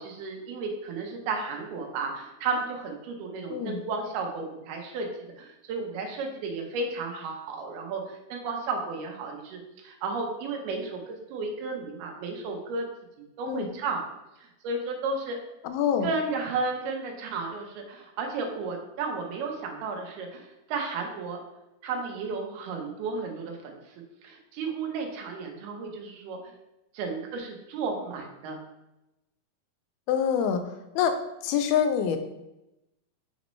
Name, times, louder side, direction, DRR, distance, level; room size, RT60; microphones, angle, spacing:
voice 1, 0.0-5.1 5.4-12.9 13.4-14.0 14.4-15.4 16.0-21.4 21.8-23.8 24.2-26.4 26.9-28.6, right 4 dB, 90° right, 2 dB, 2.9 m, -33 dB
voice 2, 15.6-16.1 30.1-30.6 31.0-31.1 31.4-32.2, left 8 dB, 85° left, 8 dB, 2.5 m, -25 dB
6.4 x 5.1 x 3.1 m, 0.92 s
omnidirectional pair, 4.3 m